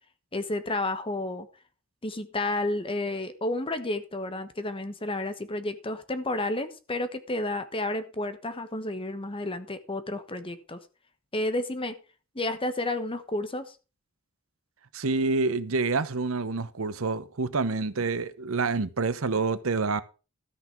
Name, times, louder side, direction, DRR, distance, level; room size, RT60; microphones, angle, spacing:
voice 1, 0.3-1.5 2.0-10.8 11.3-12.0 12.3-13.7, left 2 dB, 25° left, 1.2 m, -31 dB
voice 2, 14.9-20.0, right 4 dB, 75° right, 0.9 m, -27 dB
13.0 x 6.0 x 5.9 m
head